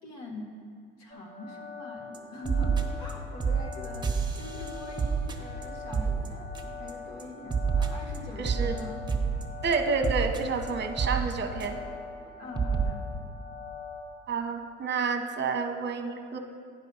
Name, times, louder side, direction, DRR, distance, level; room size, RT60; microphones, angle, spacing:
voice 1, 0.0-0.6 1.0-9.0 11.0-11.2 12.4-13.0, left 2 dB, 65° left, -1 dB, 1.7 m, -43 dB
sound 1, 1.1-14.0, left 6 dB, 35° left, 1.4 m, -43 dB
sound 2, 2.1-2.2 2.4-3.1 3.4-6.9 7.2-12.0 12.3-12.4 12.5-12.8, right 5 dB, 15° right, 1.2 m, -30 dB
voice 2, 8.4-8.8 9.6-11.8 14.3-16.4, right 5 dB, 40° right, 6 dB, 1.1 m, -29 dB
10.5 x 5.2 x 5.5 m, 2.1 s
hypercardioid pair, 65°, 29 cm